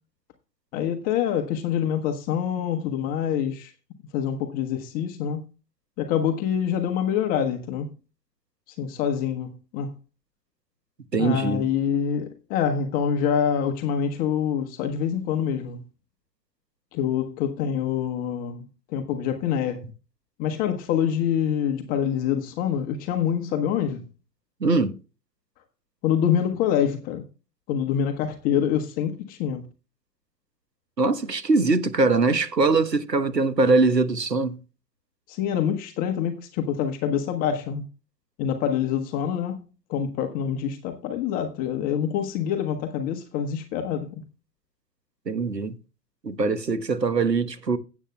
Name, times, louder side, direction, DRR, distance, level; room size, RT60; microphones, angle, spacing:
voice 1, 0.7-3.7 4.1-5.4 6.0-7.9 8.7-9.9 11.2-15.8 16.9-19.8 20.4-24.0 26.0-27.2 27.7-29.6 35.3-37.8 38.4-44.2, left 8 dB, 20° left, 0.9 m, -26 dB
voice 2, 11.1-11.6 24.6-24.9 31.0-34.6 45.3-45.8 46.2-47.8, right 3 dB, 85° right, 1.2 m, -22 dB
16.5 x 8.2 x 2.2 m
figure-of-eight pair, 115°, 48 cm